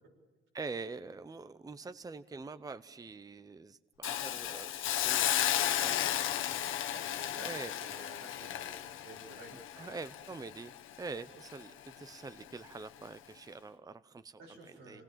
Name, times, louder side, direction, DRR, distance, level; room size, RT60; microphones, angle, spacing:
voice 1, 0.5-6.0 7.4-7.7 9.8-10.7 11.0-15.0, right 4 dB, 20° right, 14 dB, 0.6 m, -45 dB
Hiss, 4.0-11.1 11.5-11.6, left 11 dB, 85° left, 1.1 m, -34 dB
voice 2, 6.0-6.3 6.6-7.5 7.8-10.0 14.4-15.0, right 2 dB, 90° right, -1 dB, 7.5 m, -52 dB
27.5 x 19.0 x 7.5 m, 1.3 s
cardioid pair, 90°, 20 cm